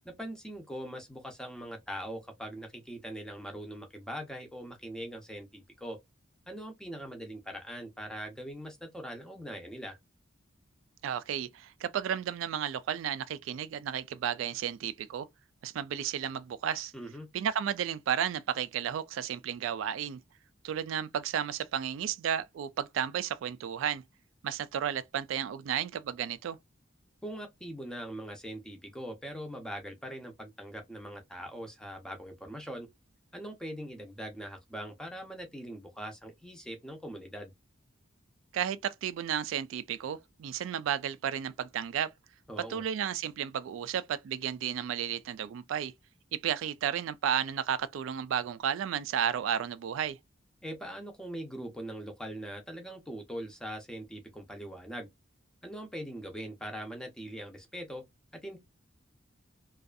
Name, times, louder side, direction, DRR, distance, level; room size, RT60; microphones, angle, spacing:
voice 1, 0.0-6.0 6.5-10.0 16.9-17.3 27.2-32.9 33.3-37.5 42.5-42.8 50.6-55.1 55.6-58.0 58.3-58.6, equal, 5° left, 0.6 m, -41 dB
voice 2, 11.0-15.3 15.6-16.9 17.3-20.2 20.6-24.0 24.4-26.6 38.5-42.1 42.7-45.9 46.3-50.2, right 9 dB, 75° right, 0.3 m, -33 dB
2.6 x 2.3 x 2.3 m
head